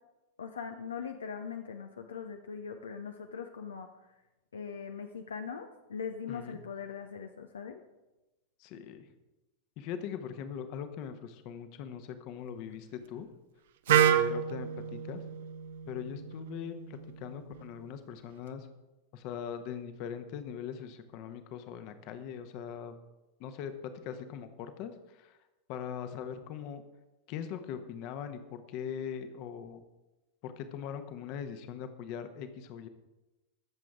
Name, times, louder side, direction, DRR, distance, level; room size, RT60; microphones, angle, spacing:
voice 1, 0.4-3.9 4.5-7.8, left 6 dB, 70° left, 5 dB, 0.7 m, -41 dB
voice 2, 6.3-6.6 8.6-9.0 9.8-13.3 13.9-15.2 15.9-18.7 19.1-23.0 23.4-25.4 25.7-26.8 27.3-29.8 30.4-32.9, left 8 dB, 45° left, 9 dB, 1.2 m, -41 dB
Wind instrument woodwind instrument, 13.9-17.8, right 10 dB, 55° right, 0.6 m, -30 dB
20.5 x 7.5 x 3.7 m, 1.0 s
figure-of-eight pair, 90°, 0 cm